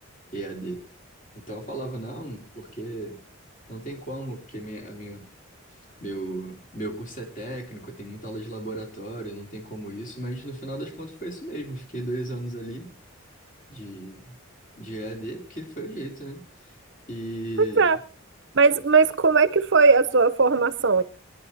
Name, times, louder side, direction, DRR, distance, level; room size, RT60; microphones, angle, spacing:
voice 1, 0.3-0.8 1.4-3.2 3.7-5.3 6.0-12.9 13.7-14.4 14.8-16.8 17.1-17.9, right 1 dB, 40° left, 3.5 m, -35 dB
voice 2, 17.6-18.0 18.5-21.0, right 4 dB, 55° right, 0.8 m, -18 dB
23.0 x 11.0 x 4.2 m
head